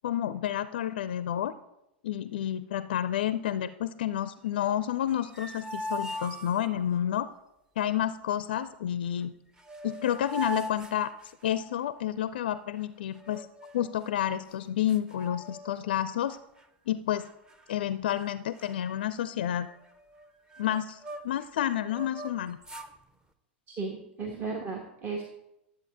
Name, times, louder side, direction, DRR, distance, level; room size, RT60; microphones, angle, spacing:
voice 1, 0.0-1.5 2.0-7.3 7.8-9.3 9.8-11.1 11.4-13.5 13.7-16.4 16.9-17.3 17.7-19.7 20.6-21.0 21.2-22.6, left 11 dB, 60° left, 14 dB, 0.4 m, -30 dB
sound 1, 5.0-7.0 9.2-9.3 9.6-11.8 13.1-14.0 14.5-14.6 14.9-16.0 16.3-16.6 17.2-17.8 18.1-18.3 18.6-21.5 21.9-22.9, equal, 10° right, 0.8 m, -41 dB
voice 2, 23.7-25.2, right 4 dB, 35° right, 2 dB, 1.3 m, -35 dB
12.0 x 7.6 x 3.5 m, 0.86 s
figure-of-eight pair, 95°, 6 cm